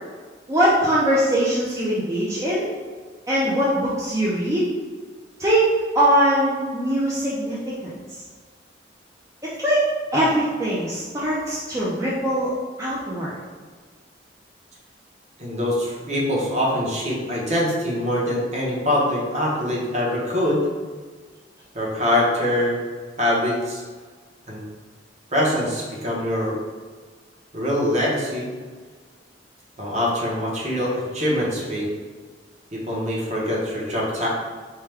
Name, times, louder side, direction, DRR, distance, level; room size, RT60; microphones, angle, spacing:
voice 1, 0.5-2.7 3.3-4.6 5.4-5.7 5.9-7.9 9.6-9.8 10.1-12.5 12.8-13.4, right 1 dB, 15° right, -7 dB, 0.5 m, -21 dB
voice 2, 15.4-20.7 21.7-22.8 23.2-23.8 24.5-24.6 25.3-26.6 27.5-28.5 29.8-31.9 32.7-34.3, left 1 dB, 40° right, -4 dB, 1.0 m, -23 dB
4.5 x 2.2 x 3.4 m, 1.5 s
head